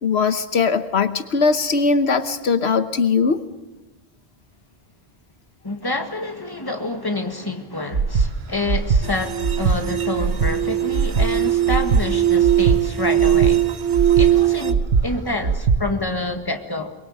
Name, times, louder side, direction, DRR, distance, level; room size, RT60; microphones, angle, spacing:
voice 1, 0.0-3.4, left 5 dB, 80° left, 1.3 m, -20 dB
voice 2, 5.6-13.7 14.2-16.9, left 2 dB, 20° left, 2.0 m, -28 dB
Breathing, 7.9-8.3 8.7-9.0 9.4-9.8 10.2-10.5 10.9-11.3 11.7-12.0 12.4-12.8 13.2-13.5 13.9-14.3 14.7-15.0 15.4-15.8, right 5 dB, 70° right, 1.4 m, -20 dB
sound 1, 9.0-14.7, right 12 dB, 90° right, 1.3 m, -20 dB
23.5 x 22.5 x 7.9 m
omnidirectional pair, 1.1 m